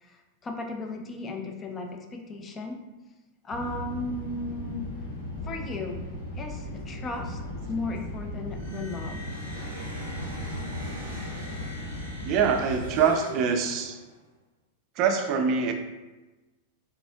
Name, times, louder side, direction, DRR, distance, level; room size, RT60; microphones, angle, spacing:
voice 1, 0.0-2.8 3.4-4.9 5.4-6.0 6.4-7.4 7.7-9.2, left 2 dB, 20° left, 3 dB, 0.5 m, -35 dB
sound 1, 3.5-13.0, left 1 dB, 60° left, 0.8 m, -37 dB
sound 2, 8.5-14.2, right 1 dB, 80° left, 1.2 m, -40 dB
voice 2, 12.2-14.0 15.0-15.7, right 6 dB, 40° right, 5 dB, 0.4 m, -24 dB
4.1 x 3.5 x 2.3 m, 1.1 s
figure-of-eight pair, 90°, 0 cm